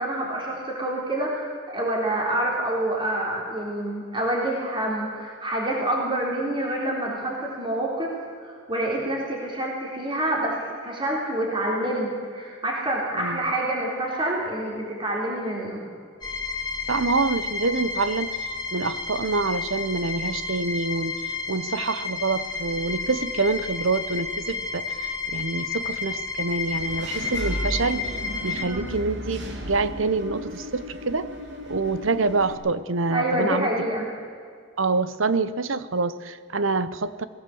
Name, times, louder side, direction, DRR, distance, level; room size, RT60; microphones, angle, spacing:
voice 1, 0.0-8.1 8.4-15.8 28.6-28.9 33.1-34.1, right 1 dB, 25° right, -2 dB, 3.8 m, -27 dB
voice 2, 13.2-13.5 16.9-31.3 31.7-33.7 34.8-37.2, right 3 dB, 80° right, 14 dB, 0.9 m, -26 dB
sound 1, 16.2-28.6, left 4 dB, 20° left, 3.3 m, -31 dB
Engine / Mechanisms, 26.6-32.5, equal, 60° right, 2.7 m, -35 dB
20.5 x 16.5 x 7.9 m, 2.2 s
head